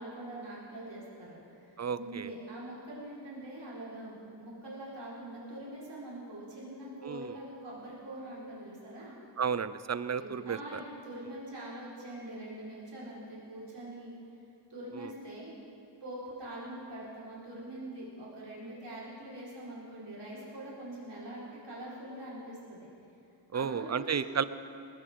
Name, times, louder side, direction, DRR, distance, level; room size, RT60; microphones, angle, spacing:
voice 1, 0.0-9.1 10.2-14.1 14.7-15.5 16.0-22.9 23.5-24.5, right 1 dB, 60° right, -8 dB, 4.8 m, -44 dB
voice 2, 1.8-2.3 7.0-7.3 9.4-10.8 23.5-24.4, right 6 dB, 35° right, 14 dB, 0.5 m, -32 dB
20.5 x 16.0 x 3.8 m, 2.6 s
wide cardioid pair, 85°, 47 cm